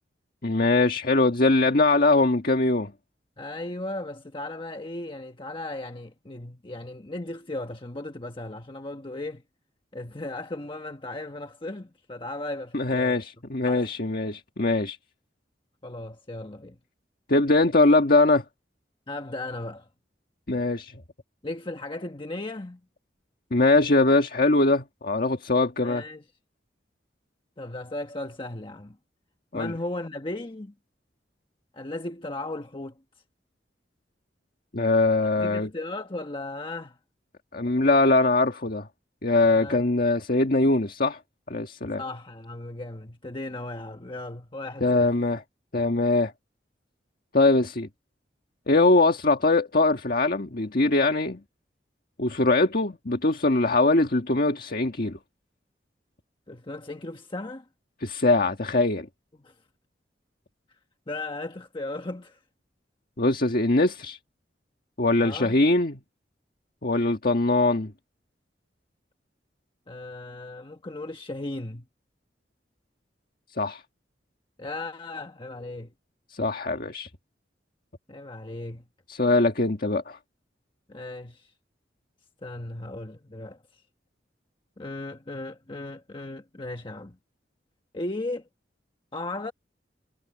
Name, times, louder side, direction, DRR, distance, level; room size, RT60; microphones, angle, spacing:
voice 1, 0.4-2.9 12.7-15.0 17.3-18.4 20.5-21.0 23.5-26.0 29.5-29.7 34.7-35.7 37.5-38.9 39.2-41.2 41.5-42.0 44.8-45.4 45.7-46.3 47.3-47.9 48.7-51.4 52.2-55.2 58.0-59.1 63.2-64.2 65.0-66.0 66.8-67.9 73.6-73.8 76.3-77.1 79.1-80.2, left 2 dB, 55° left, 1.7 m, -22 dB
voice 2, 3.4-9.4 9.9-13.2 13.7-13.9 15.8-16.8 19.1-19.9 21.4-22.8 25.8-26.2 27.6-29.0 29.5-30.7 31.7-33.0 35.4-37.0 39.4-39.8 42.0-45.1 56.5-57.7 59.4-59.5 60.7-60.8 61.1-62.4 65.2-65.6 69.9-71.9 74.6-75.9 78.1-78.8 80.9-81.5 82.4-83.8 84.8-87.2 87.9-88.4 89.1-89.5, left 2 dB, 30° left, 1.3 m, -36 dB
head